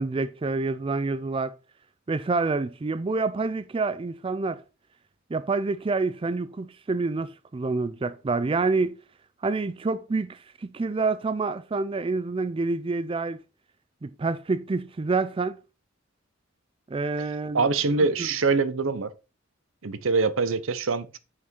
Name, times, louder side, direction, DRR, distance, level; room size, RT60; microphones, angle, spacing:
voice 1, 0.0-1.5 2.1-4.6 5.3-8.9 9.4-13.4 14.0-15.6 16.9-17.7 18.2-18.3, right 3 dB, 25° right, 0.4 m, -27 dB
voice 2, 17.5-19.1 19.8-21.2, right 4 dB, 80° right, 0.7 m, -24 dB
6.2 x 5.9 x 4.4 m
head